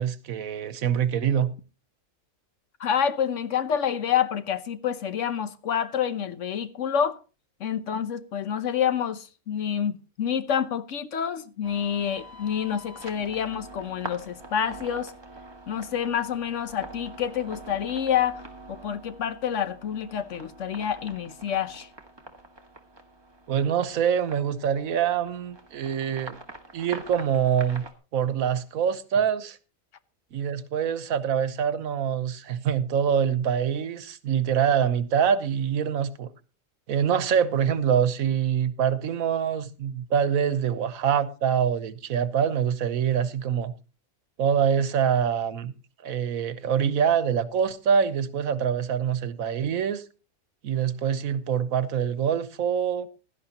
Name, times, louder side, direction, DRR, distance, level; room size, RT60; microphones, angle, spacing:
voice 1, 0.0-1.5 23.5-26.4 26.7-27.8 28.1-29.6 30.3-36.3 36.9-43.7 44.4-45.7 46.0-50.0 50.6-53.1, right 8 dB, 90° right, 1.3 m, -25 dB
voice 2, 2.8-7.2 7.6-15.1 15.7-18.4 18.7-21.9, left 8 dB, 65° left, 1.2 m, -28 dB
sound 1, 11.6-27.9, right 1 dB, 20° right, 1.4 m, -45 dB
16.5 x 12.5 x 2.9 m
omnidirectional pair, 1.4 m